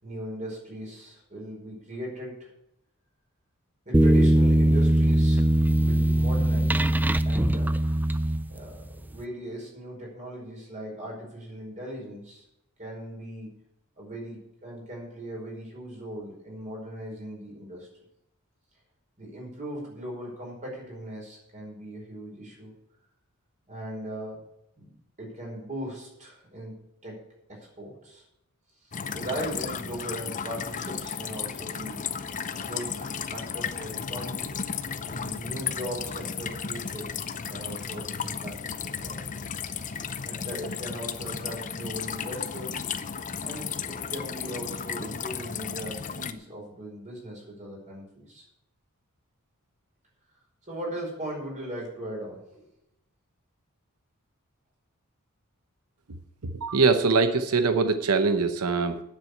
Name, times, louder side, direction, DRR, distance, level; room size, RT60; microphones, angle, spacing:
voice 1, 0.0-2.5 3.8-5.5 5.8-7.0 7.2-7.9 8.5-12.4 12.8-13.5 14.0-17.9 19.2-22.7 23.7-24.4 24.8-24.9 25.2-26.7 27.0-27.2 27.5-28.2 29.1-32.0 32.5-34.5 35.0-37.1 37.5-39.4 40.2-42.9 43.4-48.4 50.7-52.6, right 1 dB, 35° right, -2 dB, 5.1 m, -38 dB
sound 1, 3.9-8.9, right 1 dB, 10° right, 0.3 m, -21 dB
sound 2, 28.9-46.3, left 6 dB, 35° left, 0.6 m, -34 dB
voice 2, 56.4-59.0, right 4 dB, 90° right, 9 dB, 0.8 m, -23 dB
9.4 x 7.6 x 8.5 m, 0.82 s
head